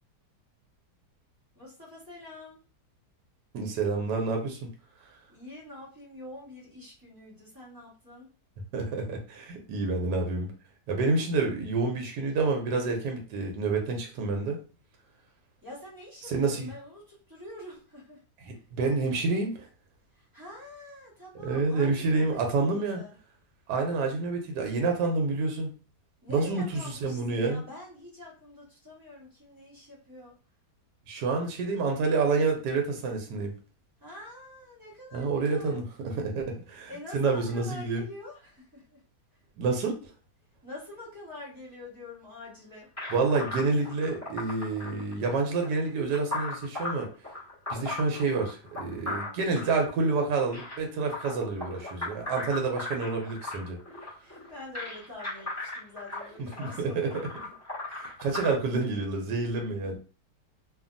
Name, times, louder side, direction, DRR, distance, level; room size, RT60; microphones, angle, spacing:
voice 1, 1.5-2.6 5.3-8.3 15.6-18.2 18.5-18.6 20.1-23.2 26.2-30.3 34.0-35.8 36.9-39.0 40.6-42.9 54.2-57.5 59.8-59.9, left 2 dB, 15° right, -6 dB, 1.1 m, -46 dB
voice 2, 3.5-4.7 8.7-10.5 10.9-14.6 16.3-16.7 18.4-19.7 21.4-23.0 23.7-25.7 26.3-27.6 31.1-33.5 35.1-38.0 39.6-40.1 43.1-47.1 47.7-53.8 56.6-57.1 57.9-60.0, right 3 dB, 75° right, 3 dB, 1.2 m, -28 dB
sound 1, 43.0-58.5, left 2 dB, 10° left, 1.0 m, -38 dB
2.8 x 2.5 x 2.5 m, 0.36 s
omnidirectional pair, 1.8 m